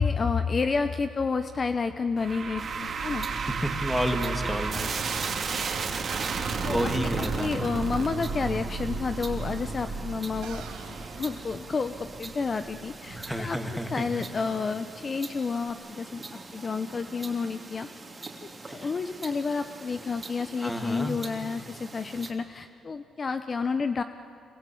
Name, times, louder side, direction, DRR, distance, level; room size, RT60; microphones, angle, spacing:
voice 1, 0.0-3.3 6.6-6.9 7.2-10.6 11.2-17.9 18.4-24.0, left 4 dB, 35° left, 10 dB, 0.8 m, -30 dB
sound 1, 2.2-13.4, right 5 dB, 50° right, 2.4 m, -33 dB
sound 2, 2.6-22.3, right 3 dB, 25° right, 2.9 m, -44 dB
voice 2, 3.6-5.0 6.7-7.5 13.2-14.1 18.7-18.9 20.6-21.2, equal, 5° left, 5 dB, 2.5 m, -30 dB
sound 3, 10.4-12.4, right 6 dB, 85° right, 4.4 m, -47 dB
26.0 x 23.0 x 8.6 m, 2.4 s
cardioid pair, 90°, 0 cm